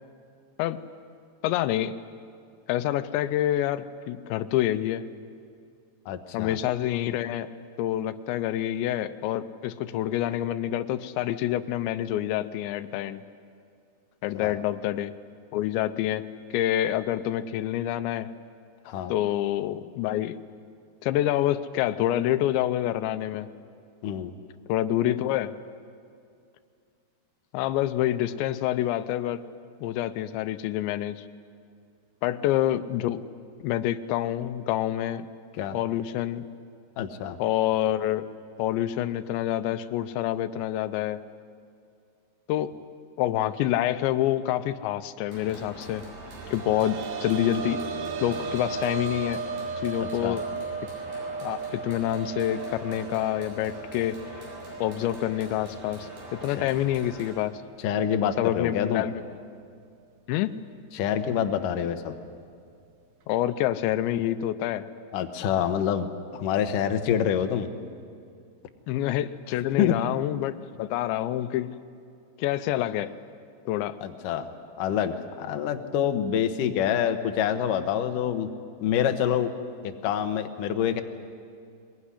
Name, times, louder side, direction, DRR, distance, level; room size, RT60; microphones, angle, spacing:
voice 1, 1.4-2.0 2.7-5.0 6.3-7.5 7.8-13.2 14.2-15.1 15.5-16.2 16.5-18.3 19.1-20.4 21.0-23.5 24.7-25.5 27.5-29.4 29.8-31.2 32.2-33.2 33.6-35.3 35.7-36.4 37.4-38.3 38.6-41.2 42.5-42.7 43.2-46.0 46.5-47.8 48.2-49.4 49.8-50.4 51.4-54.2 54.8-57.5 58.4-59.1 60.3-60.5 63.3-64.9 68.9-71.7 72.4-73.1 73.7-74.0, left 13 dB, 85° left, 12 dB, 3.0 m, -27 dB
voice 2, 6.1-6.6 14.3-14.5 18.9-19.1 24.0-24.3 35.5-35.8 37.0-37.4 50.0-50.4 56.6-56.7 57.8-59.0 60.9-62.2 65.1-66.1 66.3-67.7 69.8-70.0 74.0-74.5 74.8-78.5 78.8-79.5 79.8-81.0, left 9 dB, 70° left, 7 dB, 2.2 m, -26 dB
sound 1, 45.3-57.3, right 1 dB, 90° right, 10.0 m, -43 dB
sound 2, 46.2-57.6 58.0-58.1 59.6-59.7, right 5 dB, 65° right, 1.9 m, -36 dB
22.5 x 21.5 x 9.9 m, 2.4 s
omnidirectional pair, 5.1 m